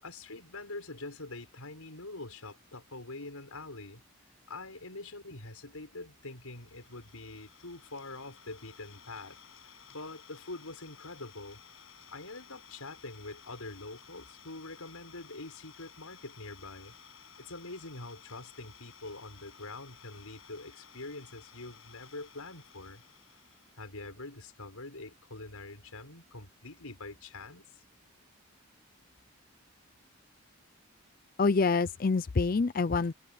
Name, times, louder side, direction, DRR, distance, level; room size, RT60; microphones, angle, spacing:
voice 1, 0.0-4.0 4.5-9.4 9.9-11.6 12.1-16.9 17.4-23.0 23.8-27.8, left 2 dB, 90° left, 6.4 m, -44 dB
Idling, 6.2-24.0, left 8 dB, 65° left, 6.4 m, -56 dB
voice 2, 31.4-33.1, left 4 dB, 40° left, 0.5 m, -26 dB
head